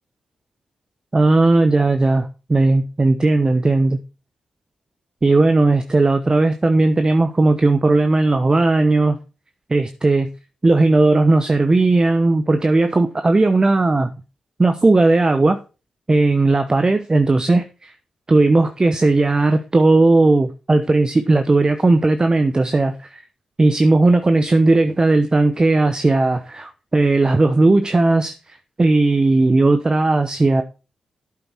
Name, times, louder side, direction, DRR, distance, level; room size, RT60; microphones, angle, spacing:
voice 1, 1.1-4.0 5.2-9.2 9.7-10.3 10.6-14.1 14.6-15.6 16.1-17.9 18.3-23.2 23.6-28.3 28.8-30.6, right 2 dB, 35° right, 0.9 m, -16 dB
8.6 x 8.0 x 4.5 m
supercardioid pair, 40°, 2 cm